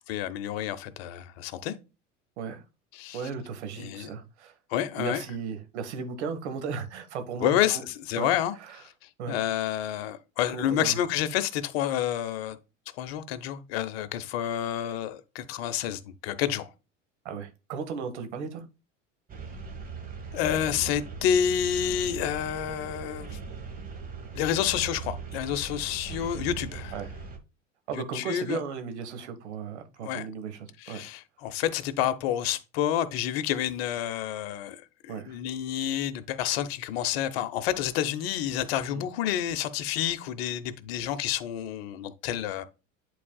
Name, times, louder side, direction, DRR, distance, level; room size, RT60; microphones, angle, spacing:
voice 1, 0.1-1.7 2.9-3.2 3.8-4.1 4.7-5.2 7.4-8.9 9.3-12.6 13.0-16.7 20.3-23.4 24.3-26.9 27.9-28.6 30.0-30.3 30.8-42.6, left 10 dB, 50° left, 0.8 m, -29 dB
voice 2, 3.1-4.5 5.0-7.8 8.1-8.3 8.6-8.8 9.2-9.4 10.5-11.0 17.2-18.6 26.9-27.1 27.9-31.0 35.1-35.3 38.8-39.0, right 6 dB, 60° right, 1.2 m, -36 dB
sound 1, 19.3-27.4, right 5 dB, 20° right, 1.5 m, -39 dB
11.0 x 4.1 x 2.2 m
figure-of-eight pair, 75°, 38 cm